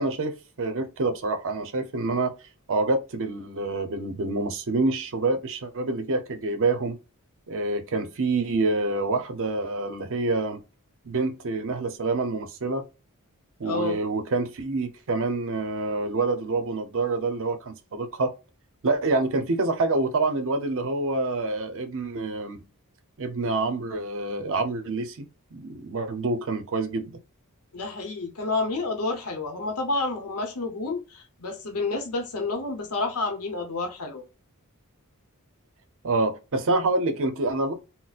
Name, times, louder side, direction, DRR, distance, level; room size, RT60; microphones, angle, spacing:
voice 1, 0.0-2.3 2.7-7.0 7.5-10.6 11.0-12.9 13.6-18.3 18.8-22.6 23.2-25.3 25.5-27.2 36.0-37.7, right 3 dB, 65° right, 0.6 m, -27 dB
voice 2, 13.6-14.0 27.7-34.2, left 3 dB, 80° left, 0.7 m, -29 dB
4.0 x 2.0 x 2.3 m
head